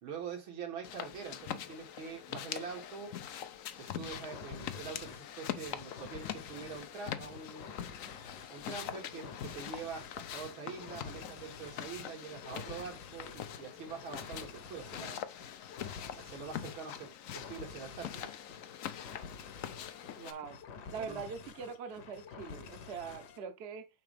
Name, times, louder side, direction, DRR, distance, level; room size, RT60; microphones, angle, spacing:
voice 1, 0.0-3.1 3.8-7.7 8.5-15.2 16.2-17.1 17.3-18.3 21.0-21.2, right 5 dB, 85° right, 2.7 m, -44 dB
sound 1, 0.8-20.3, left 10 dB, 90° left, 0.7 m, -44 dB
sound 2, 4.1-23.4, left 5 dB, 60° left, 1.4 m, -50 dB
voice 2, 20.2-20.6 20.9-23.9, right 6 dB, 50° right, 0.8 m, -42 dB
8.7 x 3.7 x 3.4 m
omnidirectional pair, 2.2 m